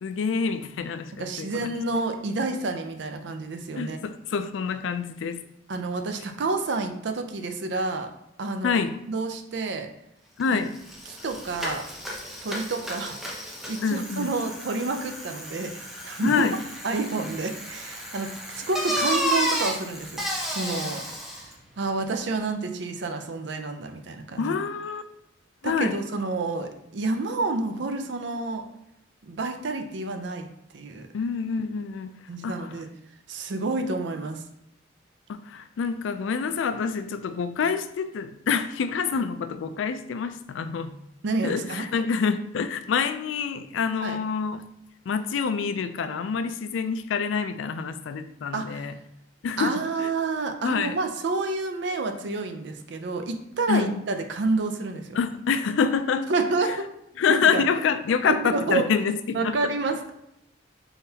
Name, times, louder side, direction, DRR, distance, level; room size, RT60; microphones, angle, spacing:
voice 1, 0.0-1.7 3.8-5.4 8.6-9.0 10.4-10.8 13.8-14.3 16.2-16.6 24.4-25.0 25.6-26.0 31.1-32.2 32.4-32.8 35.3-40.9 41.4-44.6 45.1-48.9 49.4-50.1 50.6-50.9 53.7-53.9 55.1-56.3 56.6-56.8 57.2-59.7, left 6 dB, 85° left, 10 dB, 0.3 m, -27 dB
voice 2, 1.2-4.0 5.7-8.1 8.4-8.8 9.1-9.9 10.5-10.6 11.2-11.8 12.4-15.7 16.0-16.5 16.8-20.2 20.5-21.0 21.8-24.5 25.6-28.6 29.2-30.5 30.7-31.1 32.3-32.9 33.3-34.4 41.2-41.9 44.0-44.2 48.5-48.8 49.6-55.2 56.3-56.9 57.3-57.6 58.3-58.8 59.3-60.1, right 3 dB, 65° right, 6 dB, 0.5 m, -29 dB
Bicycle, 10.4-10.5 10.7-21.5, equal, ahead, 0.7 m, -32 dB
4.1 x 3.8 x 2.8 m, 0.82 s
head